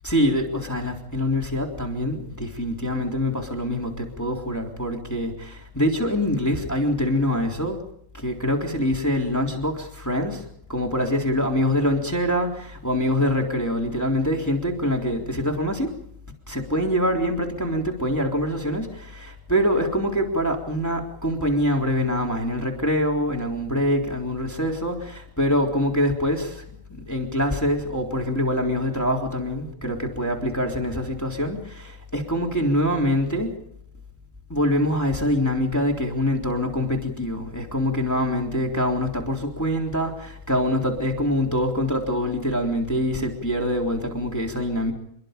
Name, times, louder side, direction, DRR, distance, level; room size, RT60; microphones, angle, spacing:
voice 1, 0.0-7.8 8.1-10.4 10.7-15.9 16.5-26.6 26.9-33.5 34.5-44.9, equal, 5° left, 1 dB, 2.8 m, -24 dB
27.5 x 22.0 x 5.2 m, 0.71 s
omnidirectional pair, 4.8 m